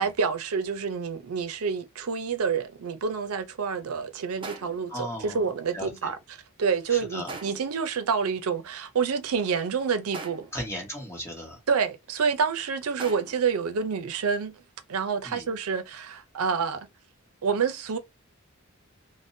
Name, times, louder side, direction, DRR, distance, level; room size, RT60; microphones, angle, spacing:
voice 1, 0.0-6.2 6.6-10.5 11.7-14.6 14.9-16.9 17.4-18.0, right 6 dB, 90° right, 0.5 m, -28 dB
sound 1, 4.4-4.9 7.3-7.8 10.1-10.7 13.0-13.5, right 3 dB, 25° right, 0.5 m, -40 dB
voice 2, 4.9-5.4 5.7-6.1 6.9-7.3 10.5-11.6 15.2-15.5, equal, 15° left, 1.2 m, -36 dB
3.5 x 2.1 x 2.6 m
head